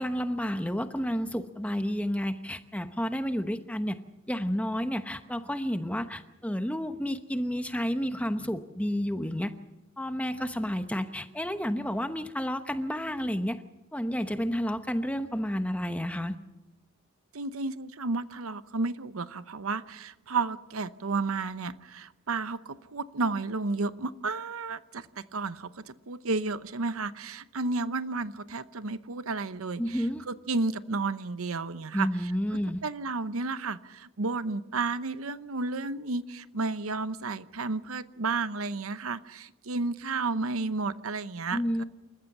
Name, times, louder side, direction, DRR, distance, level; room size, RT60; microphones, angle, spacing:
voice 1, 0.0-4.0 4.3-9.5 10.0-13.6 13.9-16.3 29.8-30.2 31.9-32.8 41.5-41.8, equal, 5° left, 9 dB, 0.9 m, -30 dB
voice 2, 17.3-32.3 32.8-41.8, right 3 dB, 85° right, 14 dB, 0.8 m, -32 dB
28.5 x 14.5 x 7.3 m, 1.0 s
head